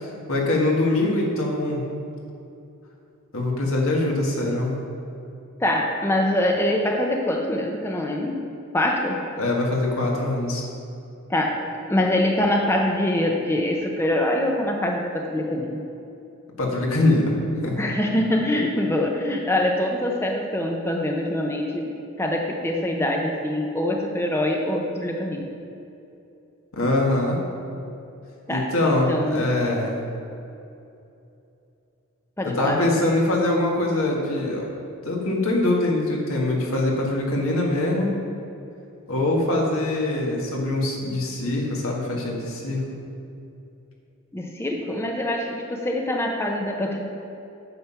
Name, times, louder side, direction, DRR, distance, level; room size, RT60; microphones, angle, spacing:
voice 1, 0.0-1.8 3.3-4.8 9.4-10.6 16.6-17.3 17.6-17.8 26.7-27.4 28.5-30.0 32.4-34.7 35.0-38.1 39.1-42.8, left 2 dB, 75° left, -1 dB, 1.8 m, -23 dB
voice 2, 5.6-8.5 8.7-9.3 11.3-11.6 11.9-15.8 17.8-25.5 28.5-29.5 32.4-32.8 44.3-47.0, left 1 dB, 10° left, 1 dB, 0.6 m, -24 dB
9.1 x 7.4 x 5.7 m, 2.7 s
head